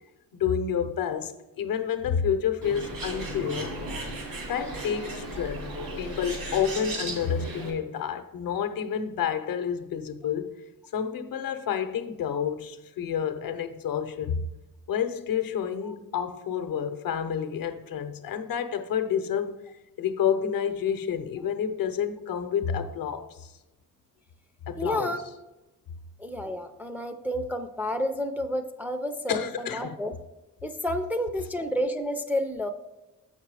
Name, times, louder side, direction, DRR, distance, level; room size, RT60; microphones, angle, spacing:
voice 1, 0.3-3.8 4.4-5.7 6.0-10.6 10.9-14.5 14.9-19.6 20.0-23.5 24.7-25.2 29.3-30.0, left 8 dB, 80° left, 0.7 m, -29 dB
Bird, 2.6-7.7, right 1 dB, 85° right, 2.6 m, -35 dB
voice 2, 24.8-25.2 26.2-30.1 30.6-32.7, equal, 5° right, 0.3 m, -30 dB
7.3 x 5.9 x 4.7 m
wide cardioid pair, 175°, 34 cm